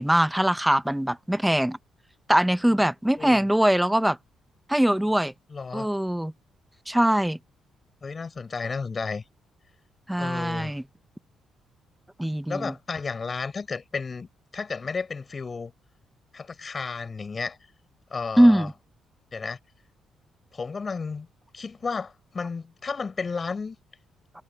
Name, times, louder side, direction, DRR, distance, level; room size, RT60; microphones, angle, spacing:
voice 1, 0.0-1.8 2.3-4.2 4.7-5.3 5.7-6.3 6.9-7.4 10.1-10.8 12.2-12.7 18.4-18.7, right 1 dB, 5° right, 0.7 m, -22 dB
voice 2, 3.2-3.5 5.5-5.9 8.0-9.2 10.2-10.7 12.5-14.3 14.5-15.7 16.3-17.6 18.1-18.7 19.3-19.6 20.5-21.3 21.5-23.8, left 4 dB, 35° left, 4.9 m, -32 dB
cardioid pair, 90°, 0 cm